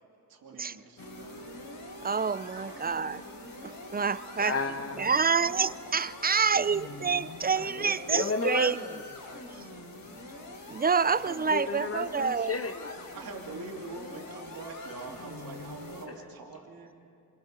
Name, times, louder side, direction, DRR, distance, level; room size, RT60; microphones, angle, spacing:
voice 1, 0.3-1.5 2.6-2.9 11.1-11.5 13.1-17.0, right 3 dB, 70° right, 0 dB, 2.8 m, -44 dB
sound 1, 1.0-16.1, left 2 dB, 65° left, 4.5 m, -44 dB
voice 2, 2.0-3.2 3.6-4.6 5.0-8.8 9.6-9.7 10.7-12.6, right 5 dB, 25° right, 17 dB, 0.6 m, -27 dB
voice 3, 4.4-5.1 7.6-9.5 11.5-13.0, left 4 dB, 40° left, 7 dB, 1.6 m, -33 dB
28.5 x 23.5 x 5.8 m, 2.6 s
cardioid pair, 65°, 37 cm